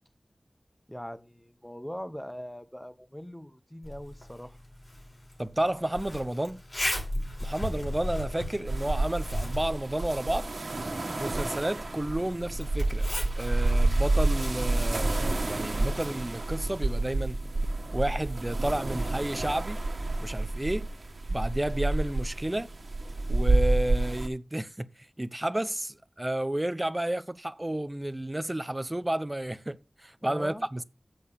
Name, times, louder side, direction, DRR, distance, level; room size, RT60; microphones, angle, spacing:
voice 1, 0.9-4.6 30.2-30.7, equal, 5° left, 0.9 m, -41 dB
Zipper (clothing), 3.8-17.4, left 1 dB, 50° left, 4.8 m, -38 dB
voice 2, 5.4-6.6 7.4-10.6 11.2-13.1 13.4-17.4 17.9-19.8 20.2-20.9 21.3-22.7 23.3-30.8, right 1 dB, 20° right, 0.7 m, -31 dB
sound 1, 8.7-24.3, right 2 dB, 70° right, 1.6 m, -29 dB
7.6 x 6.4 x 6.9 m
wide cardioid pair, 55°, 0 cm